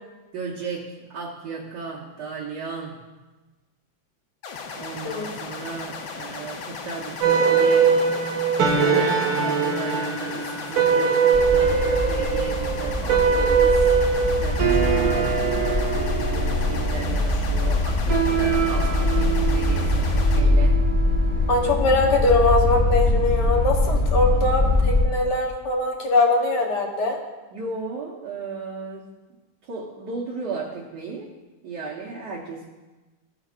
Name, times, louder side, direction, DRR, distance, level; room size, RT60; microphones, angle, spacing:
voice 1, 0.3-3.0 4.7-7.9 8.8-14.0 14.3-20.8 21.8-21.9 27.5-29.1 29.6-31.3 31.6-32.7, right 4 dB, 65° right, -5 dB, 1.7 m, -35 dB
sound 1, 4.4-20.4, left 5 dB, 80° left, 1.6 m, -36 dB
sound 2, 7.2-21.7, right 6 dB, 85° right, 1.8 m, -22 dB
sound 3, 11.3-25.0, left 2 dB, 25° left, 1.9 m, -23 dB
voice 2, 21.5-27.2, left 2 dB, 65° left, 1 dB, 1.6 m, -22 dB
15.0 x 7.3 x 2.5 m, 1.2 s
omnidirectional pair, 2.1 m